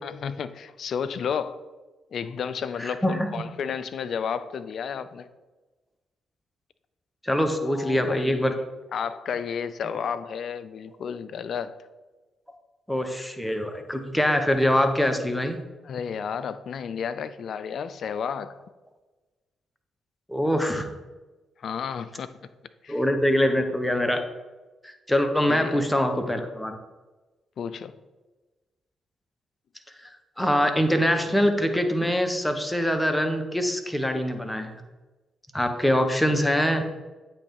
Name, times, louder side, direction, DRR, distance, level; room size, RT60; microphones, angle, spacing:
voice 1, 0.0-1.6 2.1-5.3 7.6-8.5 8.9-11.8 15.8-18.6 21.6-22.3 22.8-23.0 25.5-25.9 27.6-28.0, left 7 dB, 60° left, 0.3 m, -32 dB
voice 2, 2.8-3.3 7.2-8.6 12.9-15.6 20.3-20.9 22.9-24.2 24.8-26.8 30.4-34.7 35.5-36.8, equal, 10° left, 0.9 m, -24 dB
8.3 x 3.1 x 4.6 m
hypercardioid pair, 40°, 0 cm